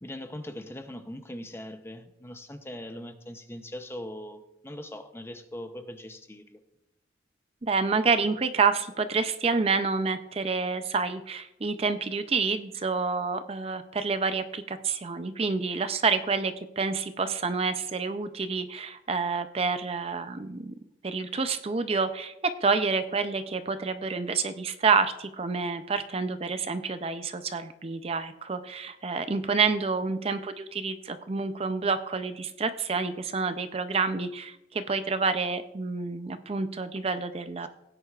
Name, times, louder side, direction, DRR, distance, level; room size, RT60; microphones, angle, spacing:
voice 1, 0.0-6.6, left 1 dB, 15° left, 0.6 m, -41 dB
voice 2, 7.6-20.7 21.0-22.3 22.6-37.7, right 4 dB, 30° right, 0.5 m, -28 dB
17.0 x 9.7 x 2.4 m
head